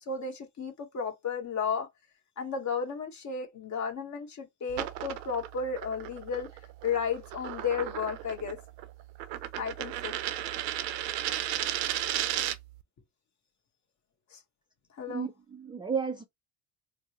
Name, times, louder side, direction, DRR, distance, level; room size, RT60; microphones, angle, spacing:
voice 1, 0.1-1.9 2.4-6.5 6.8-8.6 9.6-10.1 14.3-14.4 15.0-15.3, left 6 dB, 35° left, 1.3 m, -33 dB
sound 1, 4.7-12.8, right 13 dB, 90° right, 0.7 m, -35 dB
voice 2, 15.1-16.2, right 6 dB, 10° right, 0.4 m, -33 dB
4.3 x 2.1 x 2.9 m
supercardioid pair, 95°, 48 cm